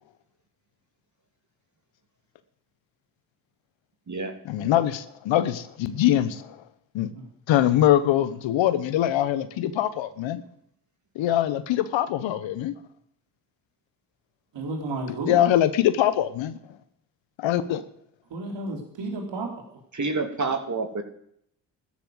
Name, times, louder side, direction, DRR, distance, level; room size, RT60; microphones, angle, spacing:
voice 1, 4.5-6.3 6.9-7.1 7.5-10.4 11.1-12.7 15.3-16.6 17.4-17.8, left 12 dB, 75° left, 1.1 m, -23 dB
voice 2, 14.5-15.4 18.3-19.5, right 2 dB, 65° right, 3.7 m, -32 dB
voice 3, 19.9-21.0, right 3 dB, 40° right, 2.9 m, -28 dB
13.5 x 11.5 x 7.9 m
hypercardioid pair, 45°, 46 cm